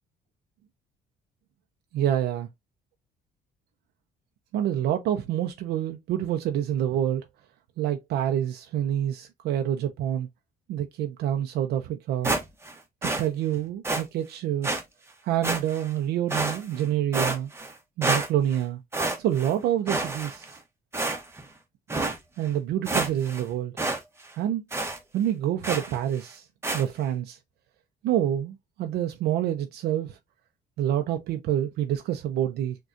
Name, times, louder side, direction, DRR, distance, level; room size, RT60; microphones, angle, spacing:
voice 1, 1.9-2.5 4.5-7.3 7.8-10.3 10.7-12.3 13.0-14.7 15.2-17.5 18.0-18.8 19.2-20.6 22.4-23.7 24.3-24.6 25.1-26.5 26.7-27.4 28.0-30.2 30.8-32.8, right 11 dB, 75° right, 0.5 m, -27 dB
sound 1, 12.2-12.7 13.0-13.2 13.8-14.0 14.6-14.8 15.4-15.9 16.3-16.8 17.1-17.7 18.0-18.6 18.9-19.5 19.9-20.6 20.9-21.4 21.9-22.2 22.6-22.7 22.8-23.4 23.8-24.0 24.3-24.4 24.7-25.0 25.6-25.9 26.6-26.8, right 2 dB, 15° right, 0.8 m, -28 dB
6.1 x 2.3 x 2.5 m
cardioid pair, 110°, 17 cm